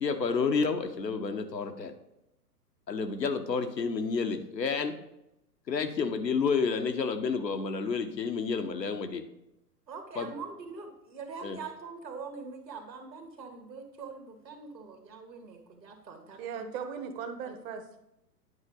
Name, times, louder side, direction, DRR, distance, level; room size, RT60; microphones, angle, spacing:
voice 1, 0.0-1.9 2.9-4.9 5.7-9.2 10.2-10.3 11.4-11.6, left 5 dB, 90° left, 7 dB, 1.0 m, -30 dB
voice 2, 9.9-16.7 17.5-17.6, right 5 dB, 85° right, 4 dB, 1.6 m, -43 dB
voice 3, 16.3-18.0, right 6 dB, 20° right, 7 dB, 0.5 m, -38 dB
9.6 x 4.7 x 3.9 m, 0.85 s
figure-of-eight pair, 115°, 49 cm